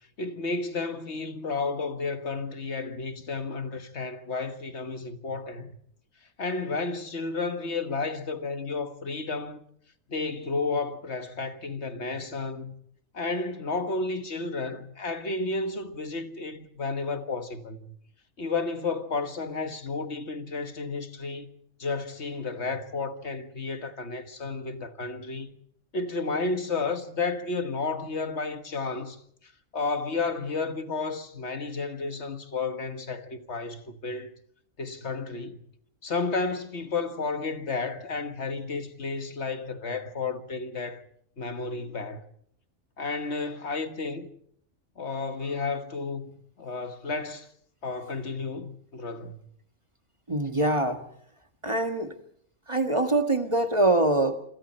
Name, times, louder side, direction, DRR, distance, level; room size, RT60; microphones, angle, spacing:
voice 1, 0.2-5.7 6.4-9.6 10.1-12.7 13.1-17.9 18.4-21.5 21.8-25.6 25.9-34.3 34.8-35.7 36.0-41.0 41.4-42.3 43.0-44.3 45.0-47.5 47.8-49.4, left 3 dB, 60° left, 1.7 m, -32 dB
voice 2, 50.3-51.0 51.6-52.2 52.7-54.4, right 2 dB, 25° right, 1.5 m, -24 dB
27.5 x 26.5 x 4.4 m
omnidirectional pair, 1.3 m